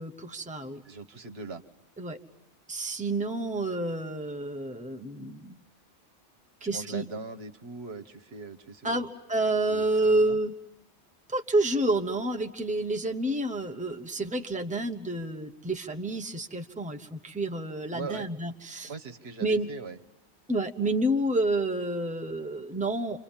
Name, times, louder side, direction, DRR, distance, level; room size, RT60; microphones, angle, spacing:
voice 1, 0.0-0.8 2.0-2.2 2.7-5.6 6.6-7.0 8.8-10.5 11.3-18.9 19.4-19.7 20.5-23.2, right 2 dB, 5° right, 4 dB, 1.1 m, -29 dB
voice 2, 0.8-1.6 6.7-9.0 9.7-10.4 17.9-18.3 18.9-20.0, right 4 dB, 70° right, 8 dB, 1.5 m, -40 dB
28.5 x 25.5 x 7.3 m, 0.96 s
omnidirectional pair, 1.1 m